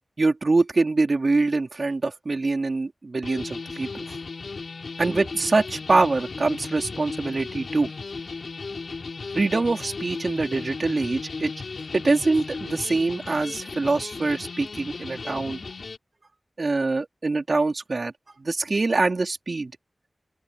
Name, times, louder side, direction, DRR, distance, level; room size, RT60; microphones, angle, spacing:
voice 1, 0.2-4.2 5.0-7.9 9.4-11.5 11.9-15.6 16.6-18.1 18.4-19.7, right 3 dB, 55° right, 3.9 m, -24 dB
sound 1, 3.2-16.0, left 4 dB, 80° left, 7.7 m, -36 dB
open air
wide cardioid pair, 85°, 0 cm